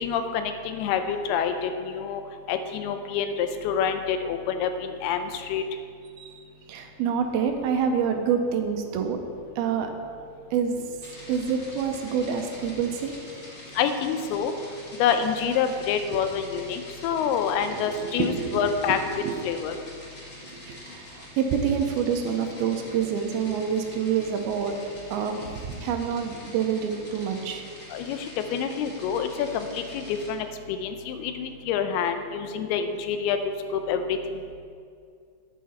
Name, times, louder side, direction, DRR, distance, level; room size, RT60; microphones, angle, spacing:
voice 1, 0.0-2.2 2.5-5.6 13.8-14.5 15.0-19.0 19.4-19.7 27.9-28.2 28.5-30.5 30.8-33.5 33.9-34.0 34.3-34.5, left 7 dB, 85° left, 8 dB, 2.6 m, -27 dB
voice 2, 6.7-9.2 9.6-9.9 10.5-10.7 11.3-13.2 17.7-19.0 19.2-19.3 20.7-24.8 25.1-27.6, right 7 dB, 80° right, 5 dB, 2.5 m, -27 dB
sound 1, 11.0-30.3, left 1 dB, 35° left, 1.4 m, -45 dB
10.5 x 8.6 x 4.2 m, 2.3 s
omnidirectional pair, 4.5 m